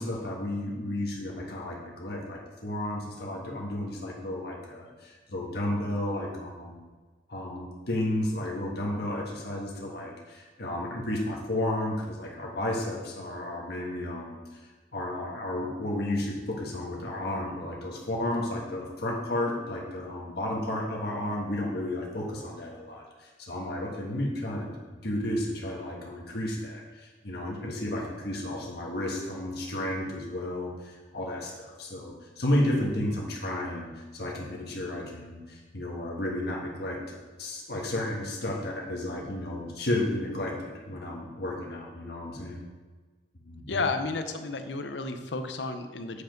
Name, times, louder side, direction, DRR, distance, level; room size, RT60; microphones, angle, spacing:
voice 1, 0.0-6.8 7.3-14.4 14.9-24.7 25.0-42.6 43.5-43.8, left 1 dB, 65° left, -2 dB, 1.5 m, -32 dB
voice 2, 43.7-46.2, left 3 dB, 90° left, 8 dB, 0.8 m, -32 dB
8.4 x 5.1 x 5.2 m, 1.3 s
head